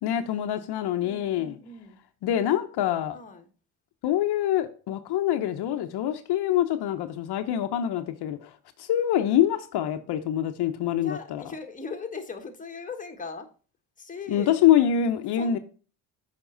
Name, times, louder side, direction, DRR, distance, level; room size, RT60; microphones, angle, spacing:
voice 1, 0.0-1.6 2.2-3.2 4.0-8.5 8.8-11.4 14.3-15.6, left 10 dB, 75° left, 0.9 m, -25 dB
voice 2, 1.0-2.0 2.5-2.6 3.1-3.5 11.0-13.5 14.0-14.5 15.4-15.6, left 4 dB, 20° left, 1.4 m, -39 dB
7.1 x 5.3 x 3.9 m
cardioid pair, 95°, 40 cm